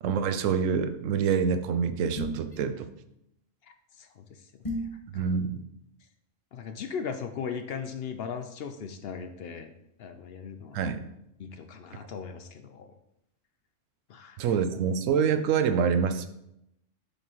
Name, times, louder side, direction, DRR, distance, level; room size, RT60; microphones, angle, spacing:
voice 1, 0.0-2.9 5.1-5.6 10.7-11.0 14.4-16.3, right 6 dB, 85° right, 10 dB, 1.0 m, -26 dB
sound 1, 2.2-2.6 4.6-5.0, equal, 25° left, 1.5 m, -33 dB
voice 2, 6.5-9.7 10.0-10.8 11.4-12.9 14.1-14.8, left 6 dB, 65° left, 8 dB, 0.7 m, -38 dB
7.2 x 5.4 x 3.0 m, 0.81 s
omnidirectional pair, 1.3 m